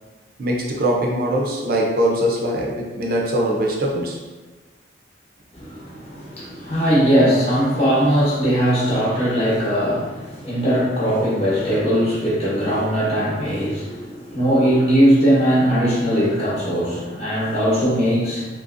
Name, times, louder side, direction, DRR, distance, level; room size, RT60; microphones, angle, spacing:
voice 1, 0.4-4.2, right 1 dB, 50° right, -2 dB, 0.4 m, -22 dB
voice 2, 5.5-18.5, equal, 35° left, -8 dB, 0.9 m, -19 dB
2.9 x 2.6 x 2.4 m, 1.3 s
head